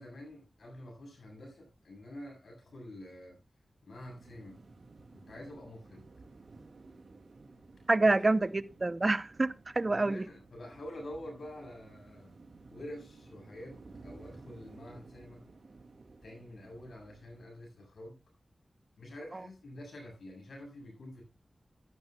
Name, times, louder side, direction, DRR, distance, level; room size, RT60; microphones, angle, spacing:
voice 1, 0.0-3.4 3.8-4.6 5.1-6.1 8.0-8.1 9.8-12.3 12.7-15.4 16.2-18.2 19.0-21.2, left 1 dB, 90° left, 7.9 m, -47 dB
sound 1, 4.0-17.5, right 3 dB, 65° right, 2.6 m, -55 dB
voice 2, 7.9-10.2, right 2 dB, 40° right, 0.9 m, -27 dB
14.0 x 13.5 x 2.4 m
cardioid pair, 55°, 0 cm